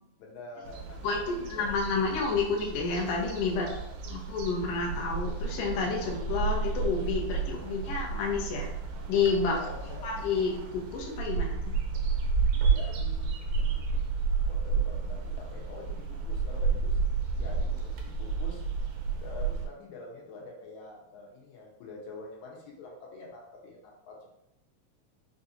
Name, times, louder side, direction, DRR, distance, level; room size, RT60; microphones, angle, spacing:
voice 1, 0.2-1.5 2.0-2.1 3.5-4.0 7.3-7.7 9.5-10.1 12.5-13.8 14.5-17.0 17.3-18.6 19.2-24.2, left 2 dB, 90° left, -1 dB, 2.2 m, -46 dB
sound 1, 0.6-19.7, right 5 dB, 80° right, 1.9 m, -31 dB
voice 2, 1.0-3.7 4.1-8.7 9.1-9.6 10.0-11.8, left 4 dB, 70° left, 0 dB, 1.5 m, -30 dB
4.9 x 2.8 x 2.5 m, 0.84 s
omnidirectional pair, 3.4 m